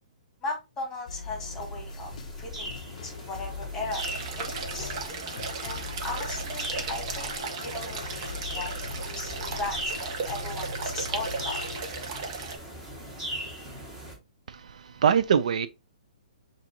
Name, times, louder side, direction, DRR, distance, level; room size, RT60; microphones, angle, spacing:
voice 1, 0.4-2.1 2.4-4.9 5.6-7.3 7.6-11.6, left 2 dB, 10° left, 1.8 m, -37 dB
sound 1, 1.1-11.8, left 3 dB, 65° left, 0.5 m, -40 dB
sound 2, 1.2-14.2, right 1 dB, 15° right, 1.8 m, -40 dB
sound 3, 3.9-12.6, right 4 dB, 45° right, 1.0 m, -36 dB
voice 2, 14.5-15.7, right 7 dB, 70° right, 0.4 m, -24 dB
7.0 x 2.7 x 2.8 m
hypercardioid pair, 145°, 4 cm